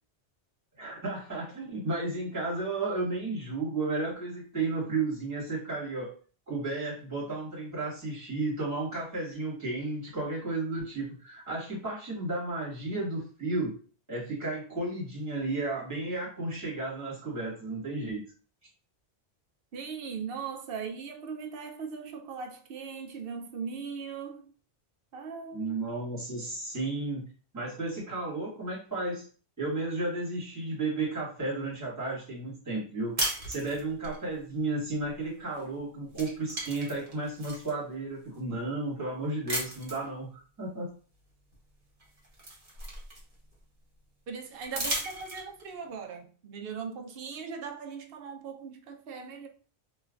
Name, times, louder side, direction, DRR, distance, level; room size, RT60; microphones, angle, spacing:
voice 1, 0.8-6.1 6.5-13.7 14.1-18.2 25.5-27.3 27.5-29.2 29.6-33.2 33.5-40.9, right 2 dB, 15° right, 1.4 m, -33 dB
voice 2, 19.7-24.5 25.1-25.8 44.3-49.5, right 6 dB, 65° right, 0.8 m, -39 dB
sound 1, 33.2-34.2 35.6-35.8 36.1-37.7 38.3-38.4 39.5-40.1 41.5-41.6 42.0-43.5 44.6-45.7, right 1 dB, 35° right, 1.0 m, -35 dB
3.2 x 3.0 x 2.4 m
omnidirectional pair, 1.1 m